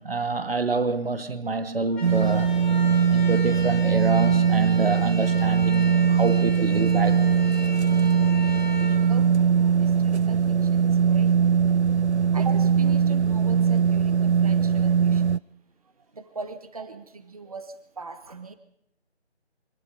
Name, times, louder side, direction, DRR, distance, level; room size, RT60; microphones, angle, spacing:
voice 1, 0.0-2.5 3.1-7.2, right 3 dB, 60° right, 2.0 m, -27 dB
sound 1, 1.9-10.0, left 3 dB, ahead, 1.4 m, -38 dB
sound 2, 2.0-15.4, right 7 dB, 80° right, 0.7 m, -21 dB
voice 2, 9.1-9.4 9.8-11.7 12.3-15.4 16.1-18.6, right 3 dB, 35° right, 1.3 m, -40 dB
25.0 x 19.0 x 5.5 m
figure-of-eight pair, 170°, 33 cm